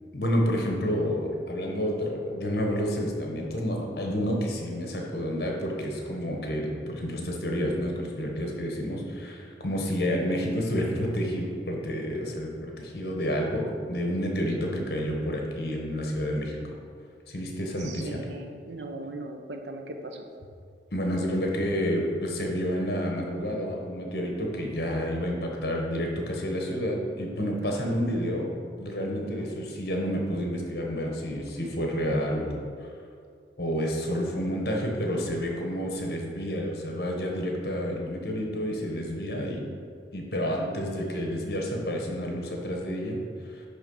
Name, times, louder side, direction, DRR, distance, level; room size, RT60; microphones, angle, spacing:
voice 1, 0.1-16.6 17.3-18.2 20.9-28.5 28.8-32.5 33.6-39.6 40.1-43.2 43.5-43.6, equal, 60° left, 0 dB, 1.2 m, -29 dB
voice 2, 17.8-20.2 27.6-27.7 29.2-29.5 40.3-40.8, right 2 dB, 80° right, 4 dB, 0.8 m, -40 dB
10.5 x 3.5 x 5.4 m, 2.2 s
head